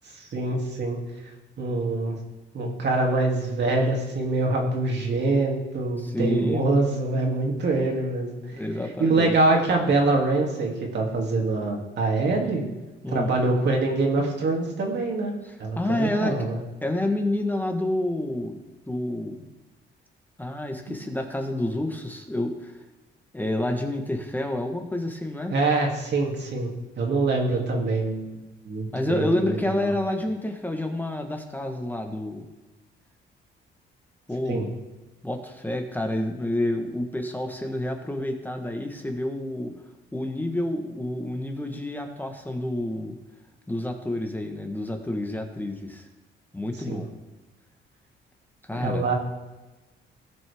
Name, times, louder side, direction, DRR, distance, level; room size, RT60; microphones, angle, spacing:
voice 1, 0.1-1.0 1.6-2.2 2.5-8.4 9.0-12.6 13.1-15.3 15.6-16.6 20.9-21.0 25.5-26.7 27.0-28.4 28.6-29.8 34.5-34.6 46.9-47.1 48.7-49.1, right 2 dB, 60° right, 0 dB, 2.7 m, -24 dB
voice 2, 6.0-6.7 8.5-9.3 13.0-13.3 15.4-16.4 16.8-18.6 18.9-19.5 20.4-22.8 23.3-25.5 28.9-32.4 34.3-34.7 35.2-39.7 40.1-43.2 43.7-46.1 46.5-47.1 48.7-49.0, left 1 dB, 10° left, 4 dB, 1.2 m, -29 dB
17.5 x 6.2 x 3.5 m, 1.1 s
cardioid pair, 90°, 20 cm